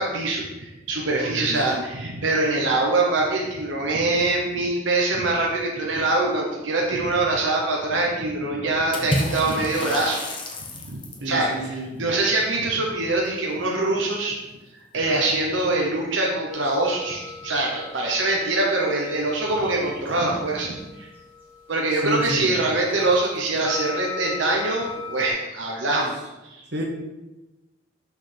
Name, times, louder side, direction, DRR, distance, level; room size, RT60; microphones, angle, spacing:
voice 1, 0.0-10.2 10.8-11.0 11.2-14.4 14.9-21.1 21.7-26.2 26.4-26.6, right 2 dB, 90° right, -2 dB, 0.9 m, -24 dB
voice 2, 1.2-1.8 11.2-12.0 22.0-22.5 26.7-26.8, right 1 dB, 65° right, 0 dB, 1.4 m, -30 dB
Water / Splash splatter, 8.9-11.3, left 1 dB, 25° left, 0.9 m, -29 dB
sound 1, 16.5-25.3, left 4 dB, 10° right, 1.3 m, -39 dB
6.3 x 6.1 x 3.4 m, 1.0 s
head